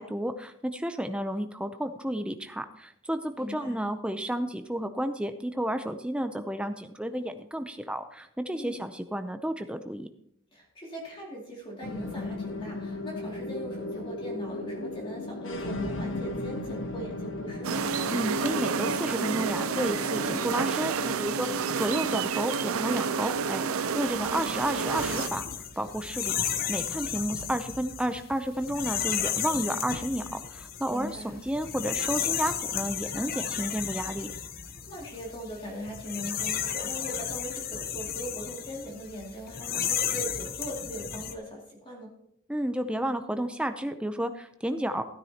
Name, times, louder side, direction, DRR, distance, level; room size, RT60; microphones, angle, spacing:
voice 1, 0.0-10.1 18.1-21.5 21.7-25.5 25.8-26.4 26.7-34.3 42.5-45.0, equal, 5° right, 8 dB, 0.5 m, -31 dB
voice 2, 3.4-3.8 8.5-8.8 10.5-17.9 24.1-24.6 30.8-31.4 34.9-42.2, equal, 25° left, -2 dB, 2.5 m, -40 dB
sound 1, 11.8-26.4, left 2 dB, 65° left, 0.9 m, -37 dB
sound 2, 17.6-25.3, right 6 dB, 85° right, 0.6 m, -29 dB
sound 3, 24.1-41.3, left 8 dB, 45° left, 0.7 m, -33 dB
15.5 x 9.6 x 2.9 m, 0.72 s
head